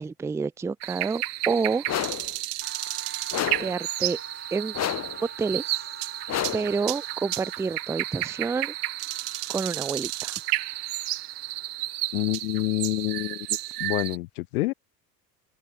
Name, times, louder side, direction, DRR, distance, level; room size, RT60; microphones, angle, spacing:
voice 1, 0.0-1.9 3.6-4.2 4.5-4.7 5.2-5.8 6.5-8.7 9.5-10.4, right 5 dB, 5° right, 0.5 m, -28 dB
sound 1, 0.8-14.2, right 17 dB, 65° right, 2.5 m, -32 dB
sound 2, 1.9-2.3 3.3-3.8 4.7-5.2 6.3-6.8, left 12 dB, 30° left, 1.3 m, -29 dB
sound 3, 2.6-12.3, right 6 dB, 25° right, 5.8 m, -46 dB
voice 2, 12.1-13.5 13.8-14.7, left 21 dB, 60° left, 2.0 m, -27 dB
open air
figure-of-eight pair, 70°, 50 cm